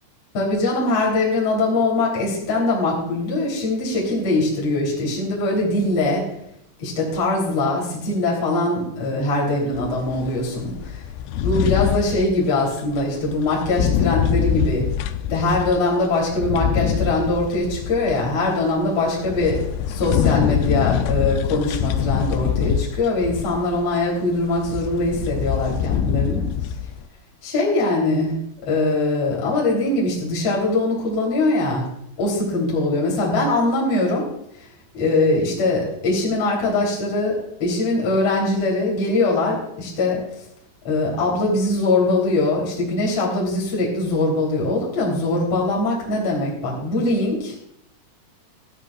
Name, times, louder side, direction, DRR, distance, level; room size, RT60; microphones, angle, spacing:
voice 1, 0.3-6.3 6.8-11.0 11.3-14.9 15.3-19.6 19.9-26.5 27.4-28.3 28.7-31.8 32.2-34.3 34.9-40.2 40.8-47.5, left 2 dB, 35° left, -4 dB, 4.1 m, -22 dB
sound 1, 9.7-12.4 12.8-27.0, left 10 dB, 80° left, 2.5 m, -24 dB
17.5 x 15.0 x 2.4 m, 0.75 s
omnidirectional pair, 5.3 m